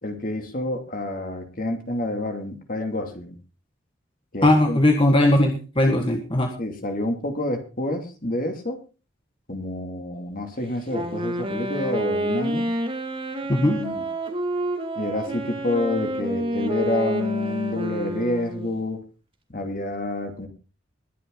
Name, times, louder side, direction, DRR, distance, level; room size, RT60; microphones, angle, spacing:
voice 1, 0.0-3.3 4.3-4.8 5.9-6.0 6.6-8.8 9.5-12.7 13.6-14.0 14.9-19.0 19.5-20.5, left 2 dB, 45° left, 4 dB, 2.8 m, -28 dB
voice 2, 4.4-6.5 13.5-13.8, left 1 dB, 25° left, 3 dB, 1.6 m, -19 dB
Wind instrument woodwind instrument, 10.9-18.8, right 1 dB, 30° right, 2.2 m, -28 dB
21.0 x 7.7 x 3.9 m, 0.34 s
head